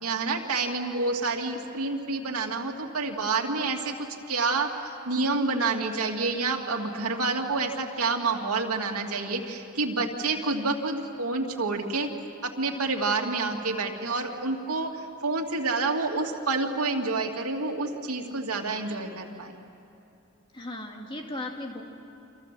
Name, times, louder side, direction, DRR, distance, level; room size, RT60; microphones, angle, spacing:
voice 1, 0.0-12.1 12.4-19.5, right 3 dB, 85° right, 1 dB, 2.5 m, -28 dB
voice 2, 20.5-21.8, left 1 dB, 25° left, 1 dB, 2.5 m, -36 dB
30.0 x 26.5 x 7.6 m, 2.8 s
head